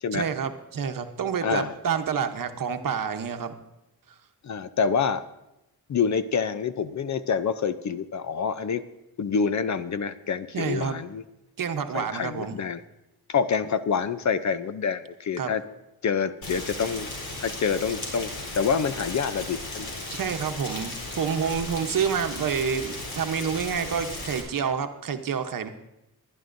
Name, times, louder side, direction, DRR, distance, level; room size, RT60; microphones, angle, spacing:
voice 1, 0.1-3.5 10.5-11.0 11.6-12.6 15.4-15.5 20.1-25.7, right 7 dB, 60° right, 7 dB, 1.0 m, -28 dB
voice 2, 1.4-1.7 4.4-5.2 5.9-8.8 9.2-11.2 11.9-12.8 13.3-15.6 16.0-17.1 17.4-19.9, left 6 dB, 50° left, 13 dB, 0.6 m, -27 dB
Rain, 16.4-24.4, left 2 dB, 70° left, 3.7 m, -36 dB
20.5 x 11.0 x 2.6 m, 0.91 s
cardioid pair, 90°, 38 cm